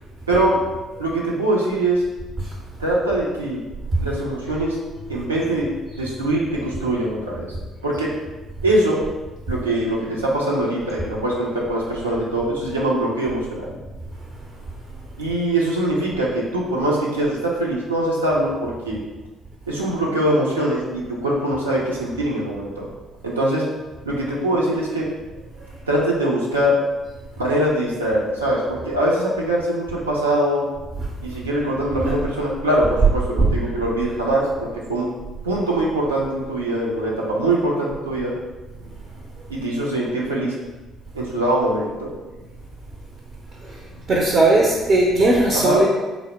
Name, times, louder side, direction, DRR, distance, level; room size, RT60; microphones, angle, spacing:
voice 1, 0.3-0.6 1.0-2.0 2.8-3.6 4.0-4.8 5.1-5.7 6.0-7.5 7.8-8.1 8.6-9.0 9.5-13.8 15.2-19.0 19.7-22.9 23.2-23.6 24.0-25.1 25.9-26.8 27.4-30.6 31.2-35.1 35.4-38.3 39.5-40.5 41.1-42.1 45.5-45.8, right 1 dB, 80° right, -4 dB, 0.6 m, -22 dB
voice 2, 44.1-45.9, right 2 dB, 40° right, -3 dB, 0.7 m, -18 dB
4.0 x 2.0 x 4.3 m, 1.1 s
figure-of-eight pair, 50°, 0 cm